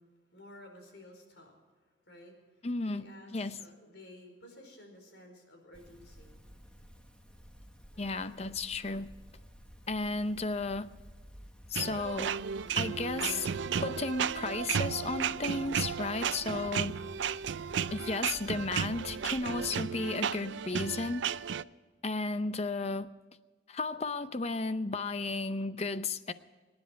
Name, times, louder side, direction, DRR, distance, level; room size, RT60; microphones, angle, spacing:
voice 1, 0.0-1.5 1.8-6.4 7.9-8.4, left 1 dB, 65° left, 3 dB, 4.8 m, -54 dB
voice 2, 2.6-3.1 3.3-3.6 8.0-9.1 9.9-10.9 11.7-12.4 12.8-13.5 13.8-17.0 17.9-21.2 22.0-23.1 23.7-26.3, left 3 dB, 35° left, 12 dB, 0.6 m, -34 dB
sound 1, 5.7-19.7, equal, 5° left, 1.4 m, -54 dB
sound 2, 11.7-21.6, right 7 dB, 75° right, 0.4 m, -34 dB
27.0 x 10.5 x 4.6 m, 1.4 s
head